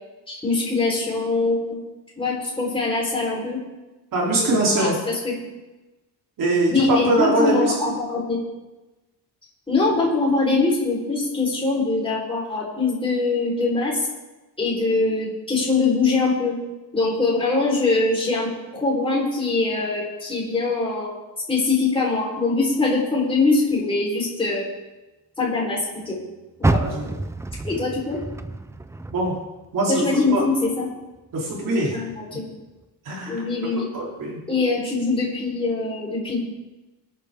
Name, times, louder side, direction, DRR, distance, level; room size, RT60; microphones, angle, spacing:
voice 1, 0.3-1.8 2.2-3.6 4.4-5.3 6.7-8.4 9.7-14.1 14.6-16.6 16.9-21.1 21.5-24.7 25.4-25.8 26.1-26.2 26.6-26.8 27.6-28.2 29.9-30.9 31.9-32.4 33.3-33.9 34.5-36.4, left 3 dB, 15° left, -4 dB, 4.0 m, -23 dB
voice 2, 4.1-4.9 6.4-7.9 26.7-27.2 29.1-29.3 29.7-30.0 30.3-30.4 31.3-31.9 33.1-33.4 33.9-34.4, right 1 dB, 50° right, -4 dB, 3.4 m, -22 dB
Car, 26.6-29.9 30.3-31.6 32.1-32.2 32.8-32.9, right 2 dB, 10° right, 0.3 m, -28 dB
23.0 x 8.9 x 3.6 m, 1.1 s
cardioid pair, 160°, 42 cm